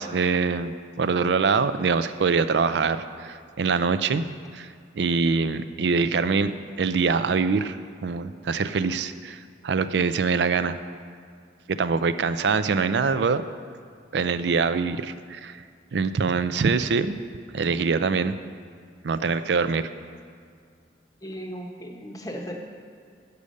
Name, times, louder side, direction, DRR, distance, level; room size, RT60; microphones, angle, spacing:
voice 1, 0.0-4.3 4.5-4.7 5.0-6.5 6.8-10.8 11.7-13.4 14.1-15.6 15.9-17.2 17.5-18.3 19.0-19.9, right 5 dB, 70° right, 12 dB, 0.4 m, -24 dB
voice 2, 21.2-22.6, equal, 20° left, 2 dB, 0.9 m, -36 dB
8.4 x 6.8 x 6.4 m, 2.2 s
head